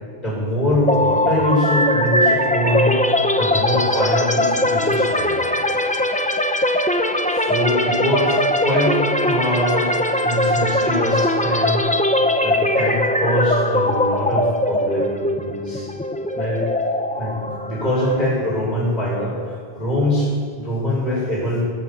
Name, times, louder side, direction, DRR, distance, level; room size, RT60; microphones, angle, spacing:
voice 1, 0.2-3.0 3.4-5.3 7.3-9.9 10.2-11.9 12.4-15.9 16.3-16.6 17.2-21.6, left 1 dB, 45° left, -7 dB, 5.6 m, -23 dB
sound 1, 0.9-18.6, left 1 dB, 10° left, 0.7 m, -20 dB
20.5 x 7.3 x 8.3 m, 2.2 s
omnidirectional pair, 1.1 m